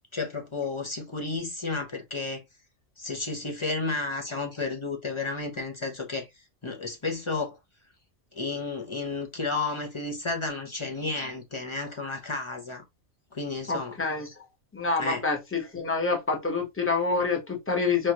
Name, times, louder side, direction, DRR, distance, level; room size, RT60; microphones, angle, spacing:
voice 1, 0.1-2.4 3.0-6.3 6.6-7.5 8.3-12.8 13.3-14.0 15.0-15.2, left 3 dB, 30° left, 0.6 m, -32 dB
voice 2, 13.7-14.3 14.7-18.1, left 4 dB, 10° left, 0.9 m, -27 dB
4.6 x 2.4 x 2.8 m
omnidirectional pair, 1.3 m